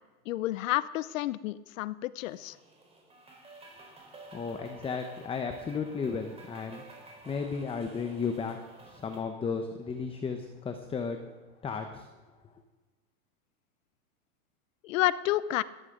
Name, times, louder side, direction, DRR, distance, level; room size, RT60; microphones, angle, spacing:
voice 1, 0.3-2.6 14.8-15.6, left 15 dB, 60° left, 17 dB, 0.7 m, -30 dB
sound 1, 2.3-9.2, right 3 dB, 15° right, 4.0 m, -51 dB
voice 2, 4.3-11.2 11.6-12.1, left 5 dB, 10° left, 6 dB, 0.8 m, -34 dB
17.5 x 13.5 x 3.8 m, 1.2 s
hypercardioid pair, 120°, 44 cm